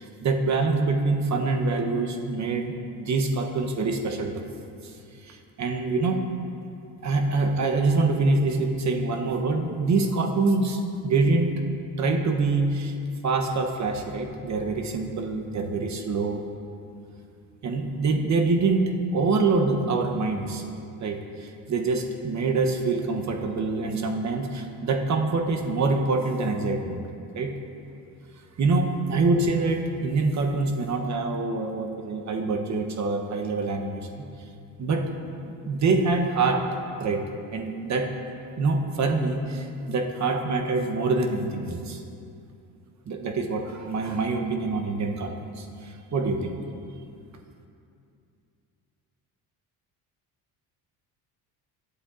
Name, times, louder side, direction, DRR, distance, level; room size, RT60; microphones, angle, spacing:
voice 1, 0.0-4.4 4.8-4.9 5.2-6.2 7.0-11.6 12.0-12.9 13.2-16.4 17.6-18.8 19.1-27.0 27.3-27.5 28.6-34.2 34.8-35.0 35.6-36.6 37.0-37.2 37.5-38.1 38.6-42.0 43.1-46.5, right 3 dB, 40° right, 4 dB, 0.9 m, -25 dB
11.5 x 7.7 x 2.5 m, 2.5 s
supercardioid pair, 90°, 45 cm